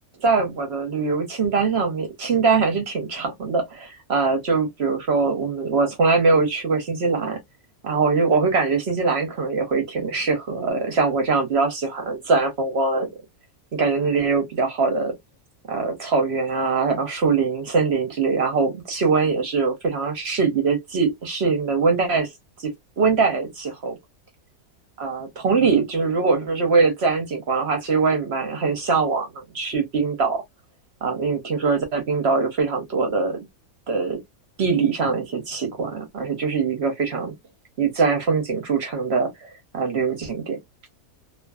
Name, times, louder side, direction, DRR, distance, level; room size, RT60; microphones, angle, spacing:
voice 1, 0.2-7.4 7.8-13.1 13.7-15.1 15.7-22.3 22.6-22.7 23.0-24.0 25.0-30.4 31.0-33.4 33.9-34.2 34.6-37.3 37.8-39.3 39.7-40.6, right 4 dB, 60° right, 0.7 m, -22 dB
2.5 x 2.4 x 2.2 m
omnidirectional pair, 1.6 m